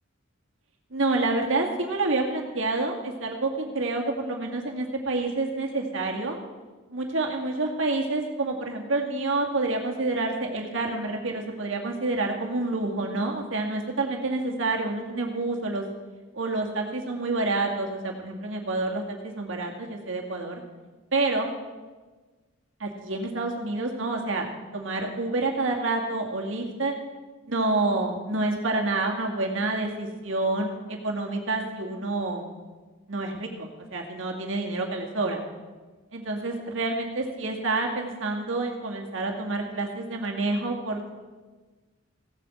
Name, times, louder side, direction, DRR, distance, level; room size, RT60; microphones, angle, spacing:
voice 1, 0.9-6.4 6.9-15.9 16.3-20.6 21.1-21.5 22.8-24.4 24.7-26.9 27.4-32.5 33.1-35.4 36.1-41.1, right 2 dB, 70° right, 0 dB, 2.2 m, -28 dB
16.5 x 8.0 x 7.8 m, 1.3 s
head